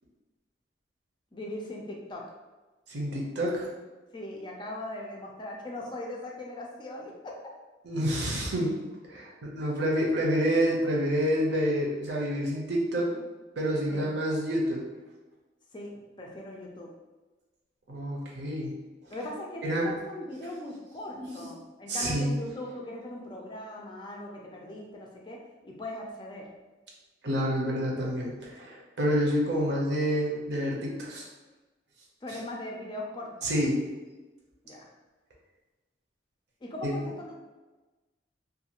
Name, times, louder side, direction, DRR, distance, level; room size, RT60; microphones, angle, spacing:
voice 1, 1.3-2.2 4.1-7.4 13.9-14.1 15.7-16.9 19.1-26.5 32.2-33.5 34.6-34.9 36.6-37.3, left 1 dB, 25° left, -1 dB, 0.4 m, -39 dB
voice 2, 2.9-3.7 7.8-8.8 9.1-13.1 13.6-14.8 17.9-18.7 19.6-19.9 21.2-21.5 21.9-22.3 27.2-31.2 33.4-33.9 36.8-37.0, equal, 70° right, -2 dB, 0.7 m, -28 dB
2.5 x 2.4 x 2.9 m, 1.2 s
head